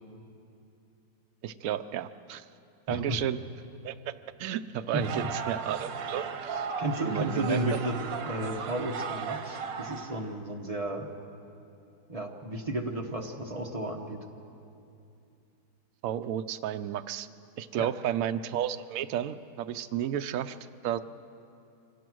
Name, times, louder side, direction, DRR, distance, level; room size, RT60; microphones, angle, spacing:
voice 1, 1.4-2.5 2.9-3.4 3.8-4.1 4.4-6.7 7.0-7.6 16.0-17.3 17.6-20.6 20.8-21.0, right 10 dB, 70° right, 10 dB, 0.8 m, -32 dB
voice 2, 2.9-3.2 4.9-5.1 6.8-8.0 8.3-11.1 12.1-14.2 17.8-17.9, right 1 dB, 25° right, 2 dB, 1.0 m, -33 dB
sound 1, 5.0-10.3, right 6 dB, 85° right, 1.7 m, -36 dB
24.5 x 17.0 x 6.3 m, 2.6 s
omnidirectional pair, 1.9 m